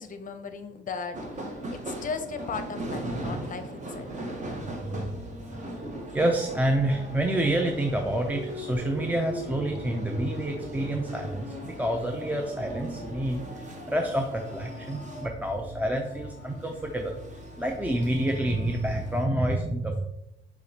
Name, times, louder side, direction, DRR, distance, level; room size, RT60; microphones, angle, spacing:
voice 1, 0.0-4.3, left 5 dB, 40° left, 8 dB, 0.6 m, -37 dB
sound 1, 1.1-19.3, right 1 dB, 40° right, 1.0 m, -39 dB
voice 2, 6.1-20.0, right 1 dB, 10° right, 2 dB, 0.4 m, -28 dB
5.9 x 2.9 x 2.8 m, 0.85 s
cardioid pair, 90°, 20 cm